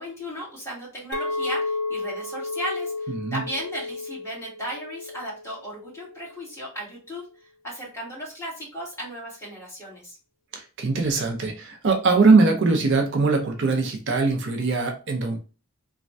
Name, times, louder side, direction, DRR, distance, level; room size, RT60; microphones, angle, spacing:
voice 1, 0.0-7.2 7.6-10.2, equal, 15° left, 1.5 m, -35 dB
Chink clink, 1.1-6.3, left 3 dB, 90° left, 0.6 m, -32 dB
voice 2, 10.5-15.4, right 3 dB, 60° right, 0.5 m, -21 dB
3.1 x 2.2 x 2.5 m
head